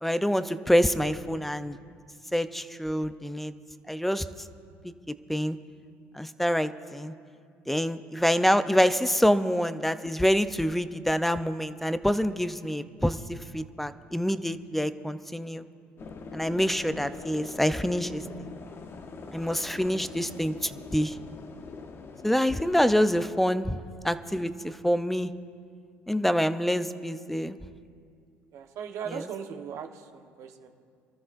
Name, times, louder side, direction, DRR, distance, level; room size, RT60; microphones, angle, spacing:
voice 1, 0.0-1.8 2.3-3.5 3.9-4.3 4.8-5.6 6.1-7.1 7.7-15.6 16.3-18.5 19.3-21.2 22.2-23.8 24.0-25.3 26.1-27.6 29.1-29.2, equal, 5° left, 12 dB, 0.6 m, -26 dB
sound 1, 16.0-23.3, left 4 dB, 40° left, 0.9 m, -43 dB
voice 2, 28.5-30.7, right 7 dB, 60° right, 4 dB, 1.2 m, -38 dB
27.5 x 13.5 x 2.6 m, 2.3 s
supercardioid pair, 80°, 6 cm